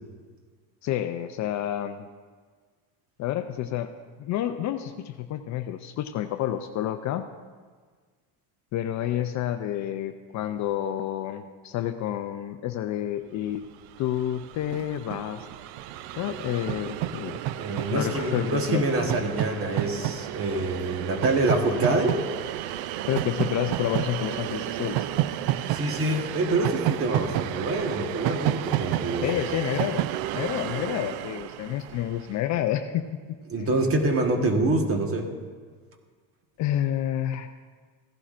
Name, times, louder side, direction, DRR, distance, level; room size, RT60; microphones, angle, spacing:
voice 1, 0.8-2.1 3.2-3.9 4.2-7.3 8.7-13.6 14.0-15.5 16.1-17.4 17.7-18.8 23.1-25.0 29.2-30.0 30.3-33.4 36.6-37.5, left 11 dB, 40° left, 8 dB, 0.5 m, -29 dB
Train, 13.7-13.8 14.0-32.4, right 13 dB, 60° right, 0.5 m, -31 dB
voice 2, 17.6-22.2 25.7-29.3 33.5-35.3, right 2 dB, 30° right, 4 dB, 1.4 m, -26 dB
15.5 x 11.5 x 2.5 m, 1.6 s
supercardioid pair, 120°, 44 cm